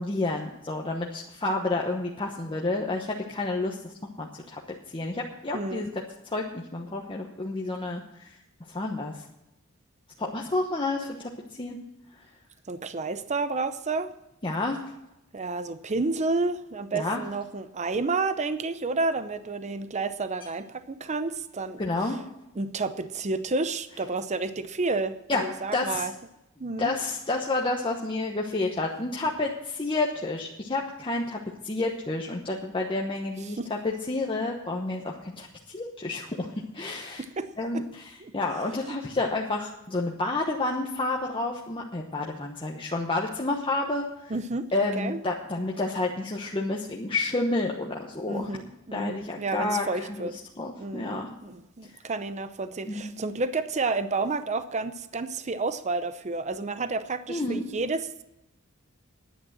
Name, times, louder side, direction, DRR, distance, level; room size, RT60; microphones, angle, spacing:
voice 1, 0.0-3.9 4.2-4.6 4.9-8.3 8.7-9.2 10.2-11.3 11.6-11.8 14.4-14.8 16.9-17.2 21.8-22.2 25.3-25.4 25.7-26.1 26.8-33.6 33.8-37.2 37.6-38.0 38.3-44.0 44.7-48.5 48.9-50.1 50.6-51.3 52.9-53.1 57.3-57.7, left 2 dB, 25° left, -1 dB, 1.0 m, -30 dB
voice 2, 5.5-5.8 12.7-14.1 15.3-22.2 22.5-26.1 26.6-26.9 33.4-33.7 37.2-37.8 38.2-38.3 38.8-39.0 44.3-45.2 48.3-50.3 50.8-58.2, right 3 dB, 35° right, 11 dB, 0.7 m, -30 dB
10.5 x 9.0 x 7.4 m, 0.91 s
head